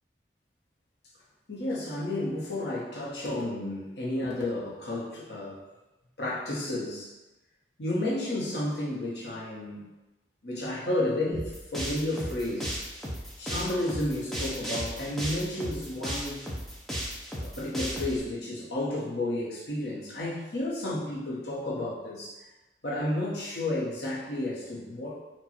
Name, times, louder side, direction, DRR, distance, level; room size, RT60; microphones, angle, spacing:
voice 1, 1.5-5.6 6.2-7.1 7.8-9.9 10.4-12.8 13.4-16.4 17.4-22.3 22.8-25.2, left 1 dB, 70° left, -6 dB, 1.4 m, -32 dB
sound 1, 11.3-18.2, equal, ahead, 0.7 m, -35 dB
4.6 x 2.6 x 4.4 m, 1.1 s
head